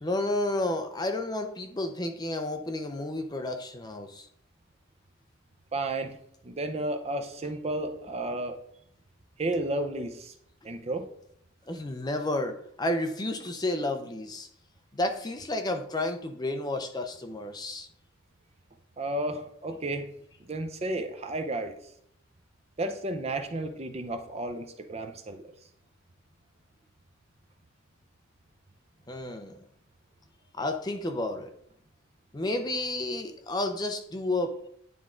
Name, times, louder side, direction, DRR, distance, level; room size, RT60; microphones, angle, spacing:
voice 1, 0.0-4.3 10.6-10.7 11.7-14.5 14.9-17.9 29.1-29.6 30.5-31.5 32.3-34.6, left 2 dB, 20° left, 6 dB, 0.5 m, -31 dB
voice 2, 5.7-6.2 6.4-8.6 9.4-10.3 10.6-11.1 19.0-20.1 20.5-21.8 22.8-25.4, right 2 dB, 30° right, 6 dB, 0.5 m, -32 dB
9.4 x 3.6 x 3.7 m, 0.69 s
head